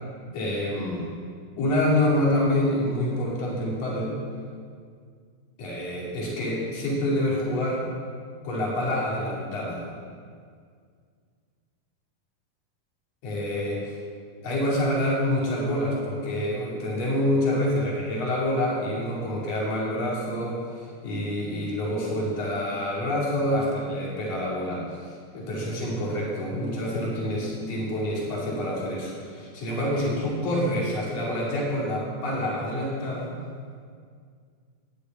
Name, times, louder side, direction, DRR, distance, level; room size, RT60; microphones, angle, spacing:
voice 1, 0.3-1.0 1.6-4.2 5.6-7.9 8.4-9.8 13.2-14.0 14.4-33.4, left 1 dB, 50° left, -5 dB, 3.5 m, -27 dB
10.0 x 8.4 x 8.7 m, 2.1 s
omnidirectional pair, 3.9 m